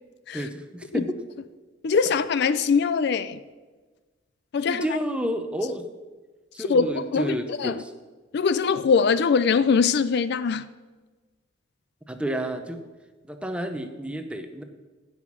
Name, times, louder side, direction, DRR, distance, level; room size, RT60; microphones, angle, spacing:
voice 1, 0.3-1.1 4.7-5.9 6.5-7.9 12.1-12.8 13.3-14.6, equal, 5° right, 0.7 m, -30 dB
voice 2, 1.8-3.4 4.5-4.8 6.6-6.9 7.1-7.8 8.3-10.7, left 5 dB, 55° left, 0.4 m, -22 dB
15.5 x 5.7 x 6.1 m
head